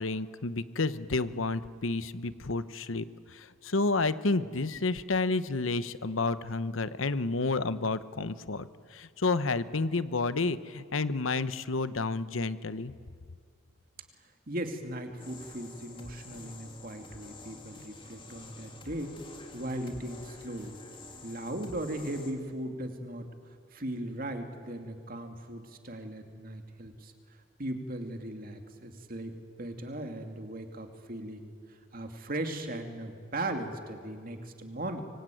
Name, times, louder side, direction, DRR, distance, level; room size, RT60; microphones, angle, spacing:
voice 1, 0.0-12.9, left 3 dB, 80° left, 14 dB, 1.0 m, -30 dB
voice 2, 14.5-19.1 19.5-20.8 21.2-23.3 23.7-27.1 27.6-35.0, right 1 dB, 45° right, 5 dB, 2.6 m, -38 dB
sound 1, 15.2-22.3, left 3 dB, 25° left, 2.8 m, -49 dB
25.0 x 24.0 x 9.3 m, 2.1 s
head